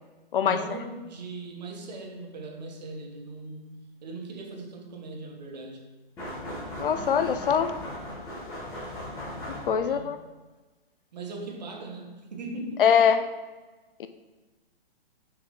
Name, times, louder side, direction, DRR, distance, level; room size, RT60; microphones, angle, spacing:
voice 1, 0.4-5.8 9.8-10.1 11.1-12.9, right 2 dB, 45° right, 3 dB, 1.0 m, -39 dB
sound 1, 6.2-10.0, left 1 dB, 10° left, 1.2 m, -38 dB
voice 2, 6.8-7.8 9.7-10.2 12.8-13.3 14.0-14.1, left 7 dB, 60° left, 10 dB, 0.5 m, -22 dB
6.3 x 4.8 x 3.7 m, 1.2 s
hypercardioid pair, 175°, 31 cm